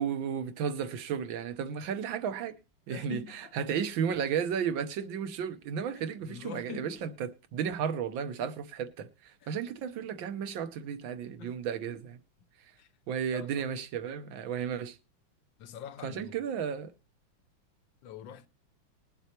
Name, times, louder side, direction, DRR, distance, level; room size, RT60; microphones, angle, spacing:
voice 1, 0.0-2.5 2.9-12.2 13.1-15.0 16.0-16.9, right 7 dB, 80° right, 1.7 m, -33 dB
voice 2, 2.9-3.7 5.9-7.0 9.4-9.6 11.4-11.6 11.9-12.0 12.8-12.9 13.3-13.7 15.6-16.4 18.0-18.5, left 8 dB, 75° left, 1.4 m, -45 dB
21.0 x 7.9 x 2.9 m
omnidirectional pair, 2.1 m